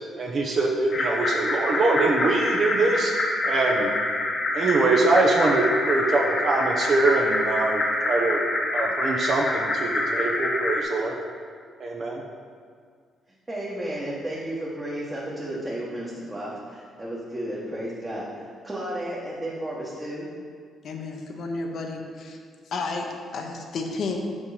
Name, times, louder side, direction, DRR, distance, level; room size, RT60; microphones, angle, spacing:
voice 1, 0.2-3.1 3.4-3.9 4.5-8.4 8.7-11.1 11.8-12.2, right 3 dB, 55° right, -1 dB, 0.8 m, -23 dB
sound 1, 0.9-10.8, left 1 dB, 40° left, 1.0 m, -26 dB
voice 2, 13.5-18.3 18.6-20.3, right 1 dB, 20° right, -6 dB, 1.2 m, -33 dB
voice 3, 20.8-22.4 22.7-24.2, left 3 dB, 60° left, 2 dB, 0.9 m, -32 dB
5.4 x 5.3 x 4.9 m, 2.1 s
cardioid pair, 90°, 0 cm